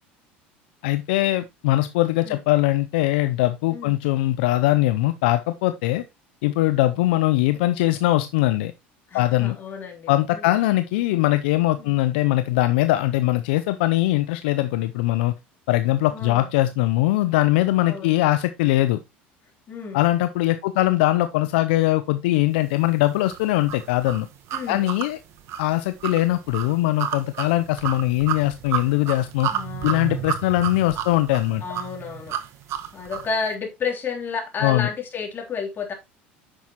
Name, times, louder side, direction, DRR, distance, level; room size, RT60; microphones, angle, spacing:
voice 1, 0.8-6.0 6.4-8.7 9.1-9.6 10.1-15.3 15.7-19.0 19.9-24.3 24.7-25.2 25.6-29.5 29.8-31.6 34.6-34.9, left 16 dB, 75° left, 0.5 m, -21 dB
voice 2, 9.1-10.5 11.8-11.9 16.1-16.5 17.9-18.2 19.7-20.0 24.5-24.9 29.5-30.2 31.6-32.4 32.9-35.9, left 5 dB, 35° left, 3.2 m, -31 dB
sound 1, 23.3-33.3, right 10 dB, 55° right, 1.3 m, -31 dB
9.7 x 6.1 x 3.0 m
hypercardioid pair, 80°, 6 cm